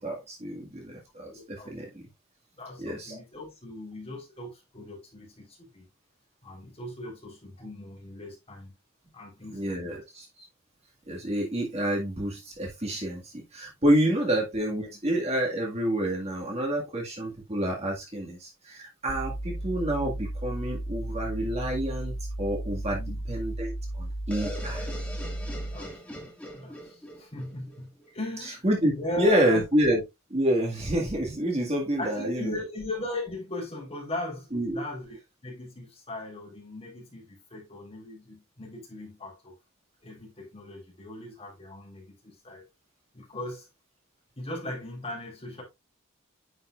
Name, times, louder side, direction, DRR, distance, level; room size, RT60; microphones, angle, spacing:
voice 1, 0.0-2.0 2.8-3.2 9.5-10.3 11.1-23.0 23.3-24.9 28.6-30.0 30.3-32.6 34.5-34.8, right 1 dB, 30° right, 1.9 m, -28 dB
voice 2, 1.2-1.7 2.6-5.9 6.4-8.7 9.1-10.0 23.0-23.2 25.7-26.3 26.6-28.7 29.0-29.6 32.0-39.6 40.0-42.7 43.1-43.7 44.4-45.6, left 1 dB, 30° left, 3.9 m, -38 dB
sound 1, 19.1-25.9, right 1 dB, 70° left, 2.4 m, -34 dB
sound 2, 24.3-28.1, left 1 dB, 5° left, 2.0 m, -41 dB
9.5 x 5.7 x 2.4 m
head